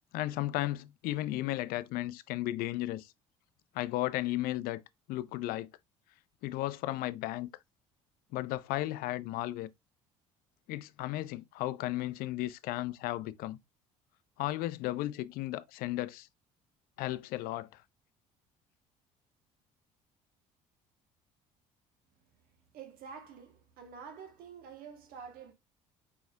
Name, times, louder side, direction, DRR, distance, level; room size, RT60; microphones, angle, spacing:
voice 1, 0.1-3.1 3.7-4.8 5.1-5.7 6.4-7.5 8.3-9.7 10.7-13.6 14.4-16.3 17.0-17.8, left 16 dB, 60° left, 0.4 m, -34 dB
voice 2, 22.7-25.5, right 6 dB, 60° right, 1.1 m, -48 dB
4.6 x 4.1 x 2.2 m
hypercardioid pair, 60°, 17 cm